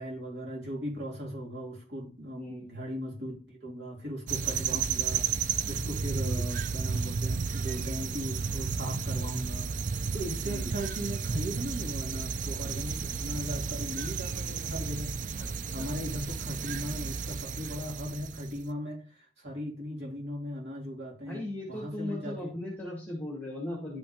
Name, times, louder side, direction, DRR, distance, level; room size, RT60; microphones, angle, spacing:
voice 1, 0.0-9.7 10.1-15.1 15.7-22.5, equal, 75° right, -3 dB, 3.4 m, -38 dB
sound 1, 4.3-18.6, right 5 dB, 45° right, 0.4 m, -33 dB
voice 2, 21.2-24.0, left 1 dB, 10° left, -3 dB, 2.3 m, -38 dB
11.5 x 5.3 x 2.9 m, 0.38 s
head